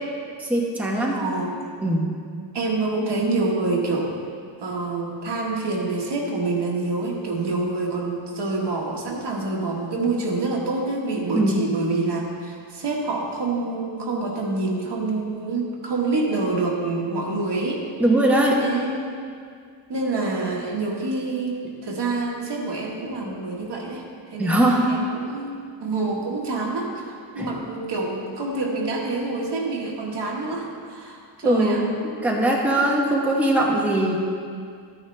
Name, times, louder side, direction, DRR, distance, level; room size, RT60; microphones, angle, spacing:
voice 1, 0.4-1.2 1.8-2.1 11.3-11.6 18.0-18.6 24.4-24.9 27.4-27.5 31.4-31.9 32.2-34.2, right 1 dB, 5° right, -3 dB, 1.1 m, -20 dB
voice 2, 1.1-1.5 2.5-4.2 4.6-17.8 18.6-19.1 19.9-21.6 21.8-24.0 24.3-31.8, right 3 dB, 60° right, -2 dB, 1.6 m, -27 dB
12.5 x 9.5 x 3.3 m, 2.2 s
wide cardioid pair, 125°, 46 cm